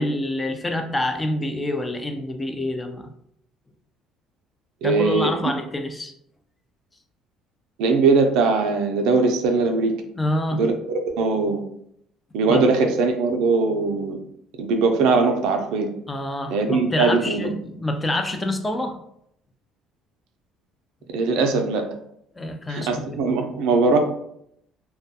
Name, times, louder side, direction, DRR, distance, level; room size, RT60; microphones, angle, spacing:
voice 1, 0.0-3.1 4.8-6.1 10.1-10.7 12.5-12.7 16.1-19.0 22.4-23.2, left 1 dB, 15° left, 5 dB, 0.3 m, -27 dB
voice 2, 4.8-5.4 7.8-10.0 10.5-10.7 11.1-11.6 12.3-14.2 14.6-15.9 16.5-17.5 21.1-21.9 22.7-24.0, right 4 dB, 80° right, 5 dB, 0.4 m, -20 dB
2.2 x 2.2 x 2.7 m, 0.72 s
cardioid pair, 110°, 0 cm